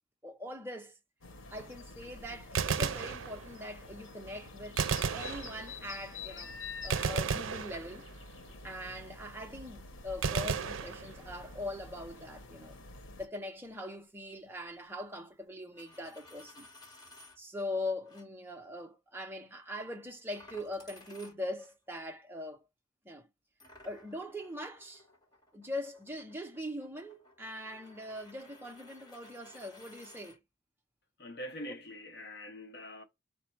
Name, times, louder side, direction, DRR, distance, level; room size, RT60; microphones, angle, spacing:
voice 1, 0.2-1.0 1.5-4.8 5.1-6.5 6.8-8.1 8.6-12.8 13.2-16.7 17.4-22.6 23.0-23.3 23.8-25.0 25.5-30.4 31.7-31.8, left 1 dB, 10° right, 0.7 m, -41 dB
sound 1, 1.2-13.3, left 3 dB, 85° left, 1.0 m, -48 dB
Gunshot gunfire, 2.4-3.8 4.8-6.0 6.9-8.3 10.2-11.6, right 6 dB, 80° right, 0.5 m, -34 dB
Coin (dropping), 15.6-17.4 18.0-18.2 20.3-21.7 23.6-30.4, left 2 dB, 20° left, 1.4 m, -56 dB
voice 2, 31.2-33.0, left 1 dB, 55° left, 0.9 m, -44 dB
4.3 x 2.2 x 4.5 m
head